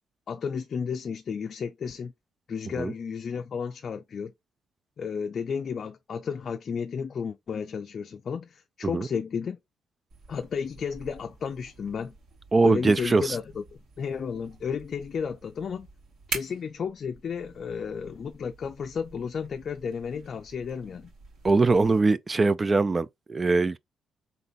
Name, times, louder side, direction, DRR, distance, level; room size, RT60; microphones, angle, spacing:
voice 1, 0.3-2.1 2.5-4.3 5.0-9.6 10.3-12.1 12.6-13.6 14.0-15.9 16.3-21.1, left 6 dB, 50° left, 0.4 m, -33 dB
sound 1, 10.1-22.0, right 4 dB, 65° right, 2.5 m, -45 dB
voice 2, 12.5-13.4 21.4-23.8, right 3 dB, 30° right, 0.4 m, -22 dB
3.9 x 3.8 x 2.5 m
cardioid pair, 90°, 0 cm